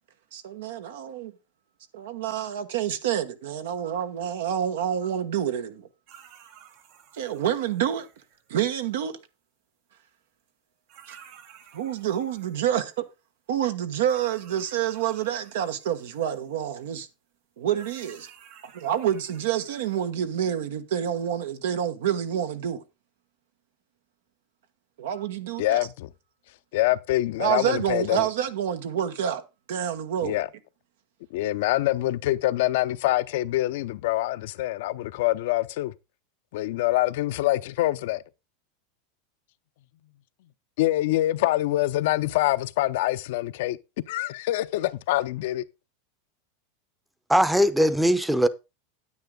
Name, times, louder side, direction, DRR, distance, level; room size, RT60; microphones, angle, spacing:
voice 1, 0.3-1.3 1.9-5.9 7.1-8.1 8.5-9.2 11.1-11.2 11.7-13.0 13.5-17.1 17.6-18.3 18.7-22.8 25.0-25.9 27.4-29.4 29.7-30.4, right 10 dB, 80° right, 1.2 m, -28 dB
sound 1, 6.1-8.9 10.5-10.6 10.9-13.0 14.0-16.9 17.7-20.0, right 8 dB, 60° right, 3.4 m, -53 dB
voice 2, 25.6-26.1 26.7-28.3 30.2-30.5 31.3-35.9 36.5-38.2 40.8-43.8 44.1-45.7, left 16 dB, 70° left, 0.6 m, -25 dB
voice 3, 47.3-48.5, equal, 5° right, 0.7 m, -20 dB
9.5 x 8.9 x 3.7 m
supercardioid pair, 120°, 0 cm